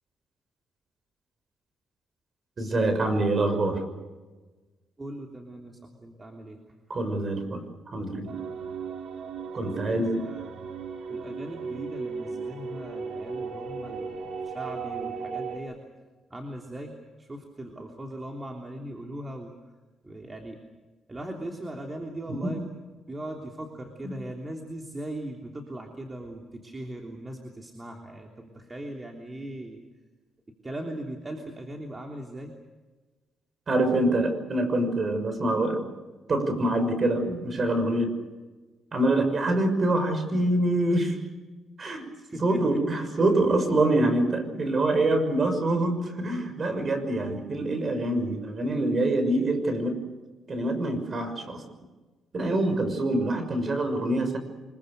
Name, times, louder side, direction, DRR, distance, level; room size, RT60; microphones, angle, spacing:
voice 1, 2.6-3.8 6.9-7.6 7.9-8.3 9.5-10.2 22.4-22.5 24.0-24.2 33.7-35.8 36.3-38.2 38.9-41.2 41.8-42.0 42.4-50.0 50.5-51.6 52.3-54.4, right 1 dB, 40° right, 8 dB, 6.1 m, -25 dB
voice 2, 5.0-6.6 9.6-10.7 11.1-15.8 16.3-19.5 20.0-20.6 21.1-22.7 23.1-29.8 30.6-32.5 42.3-42.8, right 1 dB, 20° right, 2 dB, 3.2 m, -39 dB
sound 1, 8.3-15.6, right 5 dB, 65° right, 3.8 m, -36 dB
25.0 x 22.5 x 6.7 m, 1.3 s
cardioid pair, 90°, 0 cm